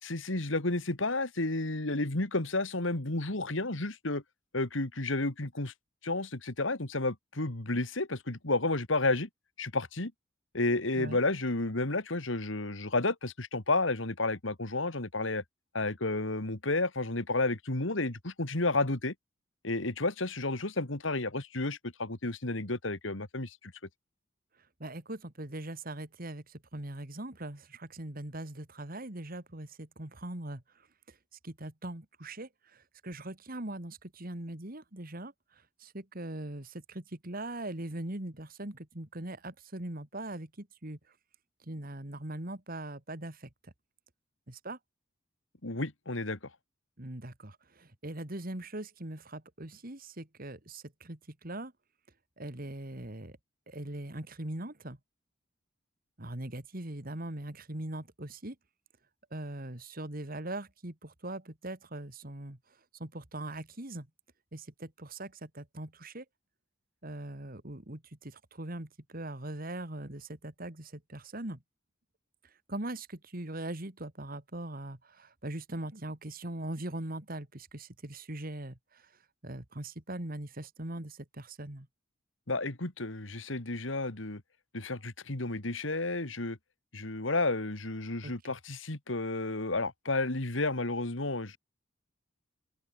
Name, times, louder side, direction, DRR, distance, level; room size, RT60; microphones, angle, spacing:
voice 1, 0.0-4.2 4.5-5.7 6.0-9.3 9.6-10.1 10.5-15.4 15.7-19.1 19.6-23.7 45.6-46.4 82.5-84.4 84.7-86.6 86.9-91.6, left 2 dB, 75° left, 2.4 m, -31 dB
voice 2, 24.8-30.6 31.1-31.2 31.4-35.3 35.8-41.0 41.6-43.7 44.5-44.8 47.0-51.7 52.4-53.4 53.7-55.0 56.2-58.6 59.3-62.6 63.0-64.1 64.5-66.2 67.0-71.6 72.7-79.1 79.4-81.9 88.2-88.3, right 1 dB, 45° right, 2.5 m, -41 dB
open air
head